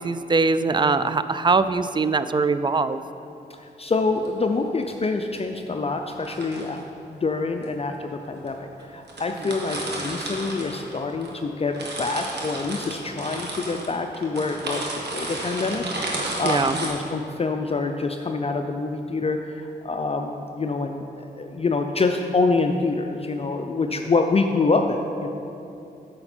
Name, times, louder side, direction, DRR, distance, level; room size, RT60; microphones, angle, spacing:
voice 1, 0.0-3.0 16.4-16.8 23.9-24.1, right 4 dB, 25° right, 13 dB, 0.4 m, -22 dB
voice 2, 3.8-6.8 7.1-21.0 21.4-25.3, left 3 dB, 35° left, 4 dB, 0.5 m, -26 dB
sound 1, 4.0-4.3 6.1-6.8 7.6-7.7 8.5-8.6 8.8-8.9 9.1-11.3 11.6-16.9, right 2 dB, 65° right, 1.5 m, -32 dB
8.6 x 6.7 x 4.3 m, 2.8 s
cardioid pair, 50°, 18 cm